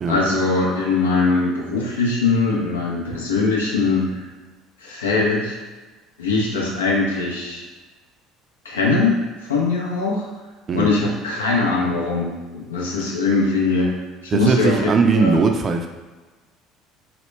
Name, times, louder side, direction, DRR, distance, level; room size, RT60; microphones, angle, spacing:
voice 1, 0.1-4.2 4.8-5.6 6.2-7.6 8.6-9.2 9.5-10.2 10.7-14.0 14.2-15.4, left 3 dB, 85° left, -3 dB, 0.6 m, -21 dB
voice 2, 14.3-15.9, right 4 dB, 40° right, 4 dB, 0.4 m, -19 dB
3.0 x 2.1 x 3.2 m, 1.3 s
hypercardioid pair, 65°, 0 cm